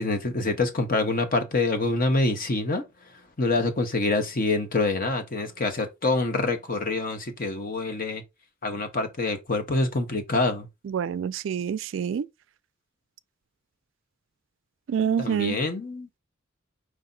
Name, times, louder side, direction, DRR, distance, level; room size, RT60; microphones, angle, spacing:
voice 1, 0.0-2.8 3.4-8.2 8.6-10.7 15.2-16.2, left 2 dB, 45° left, 1.0 m, -26 dB
voice 2, 10.8-12.3 14.9-15.6, right 7 dB, 70° right, 0.3 m, -27 dB
4.8 x 2.8 x 3.9 m
head